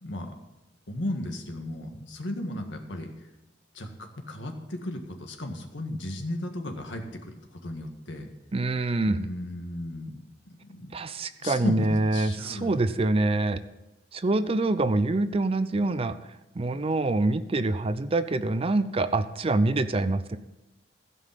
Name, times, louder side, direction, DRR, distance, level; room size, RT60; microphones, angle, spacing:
voice 1, 0.0-0.3 0.9-3.1 3.7-8.3 9.1-10.2 10.5-10.9 11.4-12.9, left 1 dB, 75° left, 4 dB, 1.8 m, -35 dB
voice 2, 8.5-9.3 10.9-13.6 14.1-16.1 16.6-20.4, right 2 dB, 30° right, 12 dB, 0.5 m, -25 dB
15.5 x 5.4 x 7.5 m, 1.0 s
head